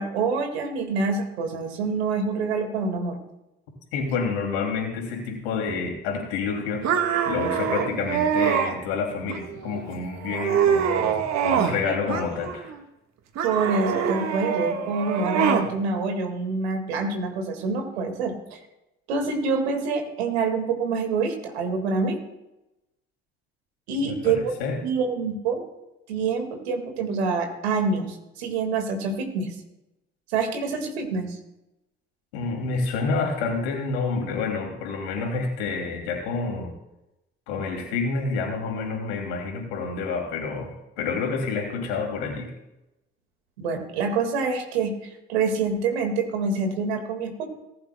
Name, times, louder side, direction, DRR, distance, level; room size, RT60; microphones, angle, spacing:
voice 1, 0.0-3.2 11.8-12.0 13.4-18.3 19.1-22.2 23.9-24.5 24.8-25.6 26.1-29.5 30.3-31.3 43.6-44.9 45.3-47.4, right 4 dB, 85° right, 5 dB, 2.0 m, -26 dB
voice 2, 3.9-7.0 7.2-12.7 24.0-24.8 32.3-36.7 37.5-42.5, left 4 dB, 80° left, 2 dB, 2.8 m, -28 dB
sound 1, 6.8-8.7 9.3-9.8 10.2-11.8 12.1-12.8 13.4-15.7, right 7 dB, 60° right, 1.6 m, -24 dB
19.0 x 11.0 x 2.3 m, 0.90 s
hypercardioid pair, 50°, 31 cm